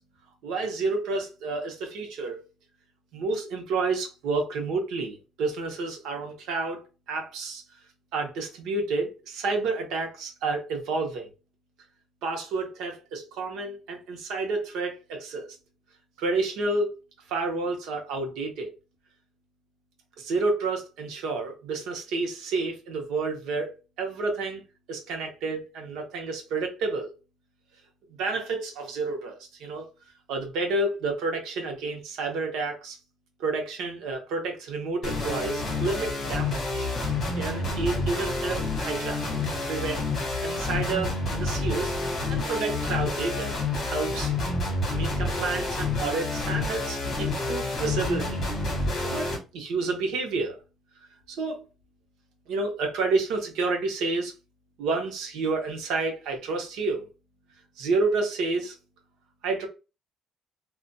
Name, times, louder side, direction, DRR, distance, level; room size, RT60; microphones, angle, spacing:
voice 1, 0.4-2.4 3.1-6.8 7.1-7.6 8.1-11.3 12.2-15.5 16.2-17.0 17.3-18.7 20.2-24.6 24.9-27.1 28.2-29.9 30.3-33.0 33.4-36.9 37.4-39.2 39.7-40.0 40.4-41.9 42.3-43.6 43.8-44.3 44.9-48.5 49.0-50.6 51.3-51.7 52.5-54.3 54.8-57.1 57.8-58.7 59.4-59.7, right 3 dB, 80° right, 0.9 m, -30 dB
sound 1, 35.0-49.4, left 2 dB, 35° left, 1.4 m, -29 dB
3.9 x 2.4 x 2.2 m
cardioid pair, 175°, 0 cm